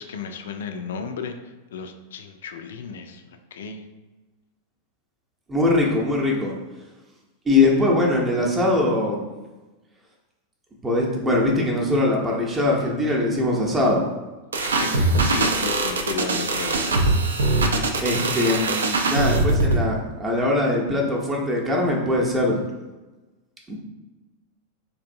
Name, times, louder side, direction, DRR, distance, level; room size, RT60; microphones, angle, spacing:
voice 1, 0.0-1.4 1.7-3.8 14.8-17.0, left 6 dB, 60° left, 6 dB, 0.3 m, -33 dB
voice 2, 5.5-6.5 7.5-9.3 10.8-14.0 18.0-22.7 23.7-23.8, left 2 dB, 15° right, -2 dB, 0.6 m, -21 dB
sound 1, 14.5-19.8, right 3 dB, 70° right, 0.3 m, -22 dB
3.4 x 2.5 x 2.5 m, 1.1 s
figure-of-eight pair, 90°, 0 cm